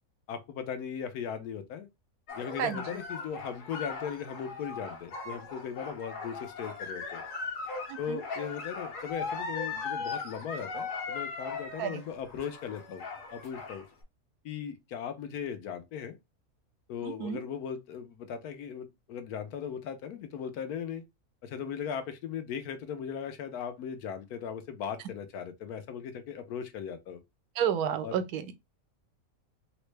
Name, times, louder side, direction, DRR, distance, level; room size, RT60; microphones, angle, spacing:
voice 1, 0.3-1.9 2.4-7.2 8.0-13.0 13.3-13.9 14.4-16.2 16.9-21.0 21.4-27.2 28.0-28.1, left 7 dB, 85° left, 1.2 m, -38 dB
sound 1, 2.3-13.9, left 4 dB, 65° left, 1.3 m, -39 dB
voice 2, 7.9-8.2 11.8-12.0 17.0-17.4 27.6-28.5, right 8 dB, 85° right, 1.1 m, -31 dB
3.7 x 2.1 x 3.2 m
omnidirectional pair, 1.6 m